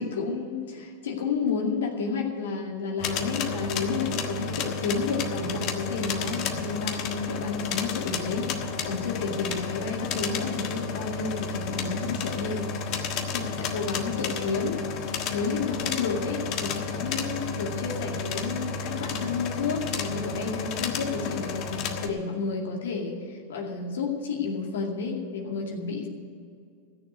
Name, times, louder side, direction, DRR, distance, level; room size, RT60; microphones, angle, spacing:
voice 1, 0.0-12.7 13.3-26.1, left 4 dB, 85° left, 0 dB, 2.2 m, -31 dB
sound 1, 3.0-22.1, left 5 dB, 50° left, 1.4 m, -32 dB
14.5 x 6.8 x 8.2 m, 2.3 s
hypercardioid pair, 120°, 0 cm